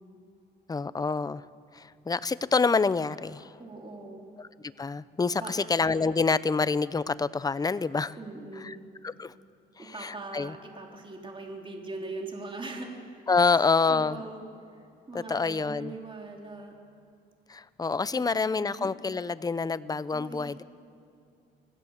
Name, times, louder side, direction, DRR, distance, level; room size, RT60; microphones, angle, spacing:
voice 1, 0.7-1.4 1.7-3.5 4.4-8.2 8.6-8.7 9.0-9.3 9.8-10.5 13.3-14.2 15.1-15.9 17.5-20.6, left 4 dB, 20° left, 16 dB, 0.6 m, -27 dB
voice 2, 3.6-4.2 5.4-5.7 8.2-8.8 9.8-13.0 13.8-14.5 14.7-16.7 18.1-18.9 20.1-20.5, right 2 dB, 25° right, 1 dB, 3.4 m, -41 dB
26.0 x 18.0 x 7.3 m, 2.5 s
cardioid pair, 90°, 20 cm